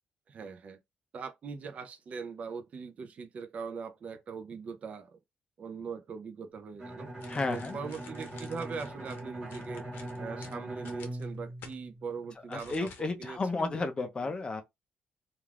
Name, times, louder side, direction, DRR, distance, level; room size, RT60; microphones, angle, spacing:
voice 1, 0.3-0.8 1.1-5.2 5.6-7.1 7.5-9.9 10.2-12.9 13.2-13.8 14.2-14.3, right 5 dB, 40° right, 0.4 m, -41 dB
Bowed string instrument, 6.8-12.5, right 1 dB, 25° right, 1.0 m, -41 dB
sound 1, 7.2-11.8 12.5-13.3 13.6-13.8, left 6 dB, 80° left, 0.7 m, -52 dB
voice 2, 7.3-7.8 12.5-14.6, left 3 dB, 25° left, 0.5 m, -32 dB
2.4 x 2.2 x 3.2 m
cardioid pair, 145°, 3 cm